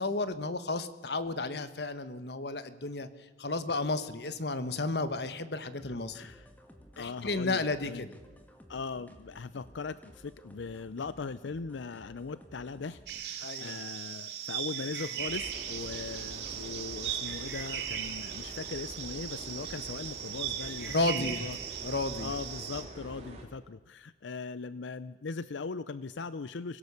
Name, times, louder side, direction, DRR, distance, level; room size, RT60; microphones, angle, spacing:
voice 1, 0.0-6.2 7.0-8.1 13.4-13.8 20.9-21.4 21.8-22.3, left 2 dB, 60° left, 12 dB, 1.3 m, -33 dB
sound 1, 5.7-13.4, equal, 10° left, 2.0 m, -55 dB
voice 2, 5.8-6.5 7.0-8.0 8.7-21.6 22.2-26.8, left 4 dB, 85° left, 16 dB, 0.6 m, -40 dB
sound 2, 13.1-22.8, right 9 dB, 65° right, 2.7 m, -38 dB
sound 3, 15.2-23.4, right 1 dB, 35° right, 4.0 m, -46 dB
24.5 x 16.5 x 7.0 m, 1.2 s
head